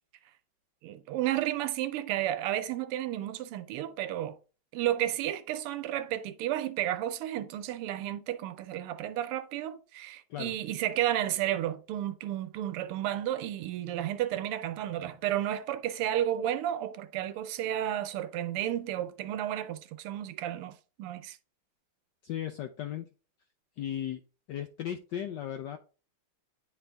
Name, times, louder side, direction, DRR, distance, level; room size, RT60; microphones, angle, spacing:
voice 1, 0.8-4.4 4.7-21.4, right 12 dB, 85° right, 1.6 m, -32 dB
voice 2, 22.2-23.1 23.8-24.2 24.5-25.8, left 10 dB, 80° left, 0.9 m, -36 dB
9.7 x 3.5 x 3.3 m
omnidirectional pair, 2.4 m